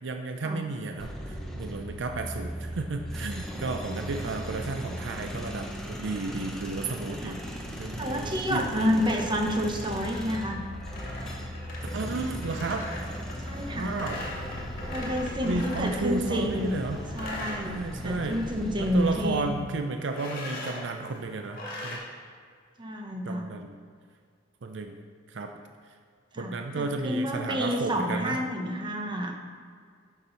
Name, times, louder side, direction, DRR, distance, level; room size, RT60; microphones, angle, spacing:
voice 1, 0.0-7.4 7.8-8.9 11.9-12.8 13.7-14.2 15.4-17.0 17.6-18.4 18.8-22.0 23.2-23.8 24.6-25.0 25.3-25.5 26.4-28.4, right 3 dB, 70° right, 5 dB, 0.5 m, -33 dB
sound 1, 1.0-19.5, equal, 5° left, 1.0 m, -37 dB
voice 2, 8.0-10.6 13.4-14.0 14.9-16.8 17.1-17.7 18.0-19.6 22.8-23.5 26.3-29.3, equal, 25° right, 2 dB, 1.0 m, -29 dB
sound 2, 8.7-16.1 16.5-18.4 18.7-19.2 20.1-20.9 21.5-22.0, left 1 dB, 50° left, 2.3 m, -40 dB
11.5 x 6.1 x 4.1 m, 2.1 s
head